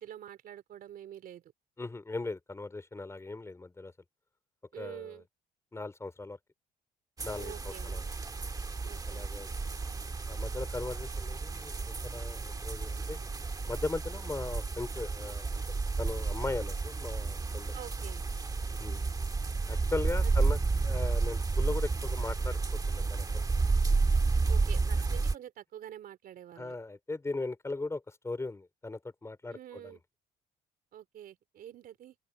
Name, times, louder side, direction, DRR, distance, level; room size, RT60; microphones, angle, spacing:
voice 1, 0.0-1.5 4.7-5.3 7.4-8.1 8.8-9.3 17.7-18.2 20.2-20.3 24.5-26.7 29.5-30.0 30.9-32.2, right 10 dB, 60° right, 3.5 m, -47 dB
voice 2, 1.8-3.9 4.8-5.2 5.7-6.4 7.2-8.0 9.1-9.5 10.3-13.2 13.7-15.6 16.0-17.7 18.8-19.0 19.7-20.6 20.8-22.6 22.9-23.3 26.6-29.9, left 3 dB, 15° left, 3.7 m, -38 dB
sound 1, 7.2-25.3, right 4 dB, 20° right, 1.6 m, -31 dB
open air
cardioid pair, 110°, 17 cm